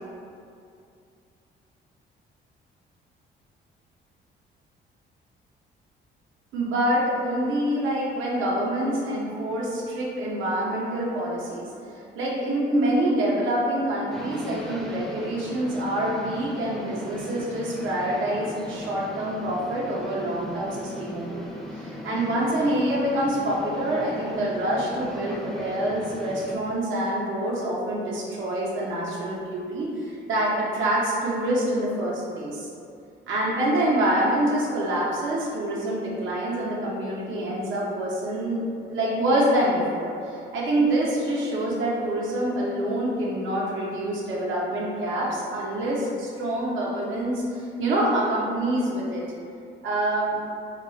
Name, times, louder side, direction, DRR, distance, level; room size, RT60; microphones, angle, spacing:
voice 1, 6.5-11.7 12.1-21.4 21.7-32.7 33.3-38.6 38.9-49.2 49.8-50.4, right 1 dB, 75° right, -5 dB, 0.8 m, -26 dB
sound 1, 14.1-26.6, left 1 dB, ahead, 0.4 m, -38 dB
2.4 x 2.3 x 3.8 m, 2.5 s
cardioid pair, 90°, 20 cm